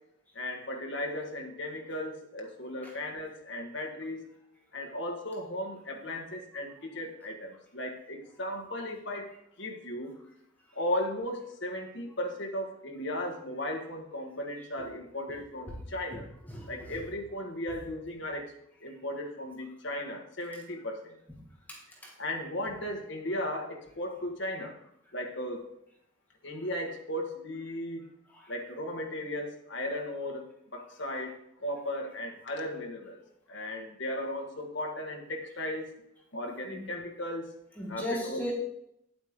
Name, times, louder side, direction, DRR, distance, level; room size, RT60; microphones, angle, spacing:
voice 1, 0.3-4.3 4.7-9.3 9.6-10.2 10.7-16.3 16.7-18.5 18.8-21.1 22.2-24.8 25.1-25.6 26.4-28.1 28.5-33.2 33.5-35.9 36.3-37.5 37.9-38.5, left 1 dB, 60° left, 2 dB, 1.6 m, -36 dB
voice 2, 16.5-17.0 21.7-22.1 28.3-28.4 36.7-36.8 37.8-38.5, left 1 dB, 10° left, -3 dB, 1.8 m, -37 dB
9.5 x 8.7 x 3.7 m, 0.77 s
head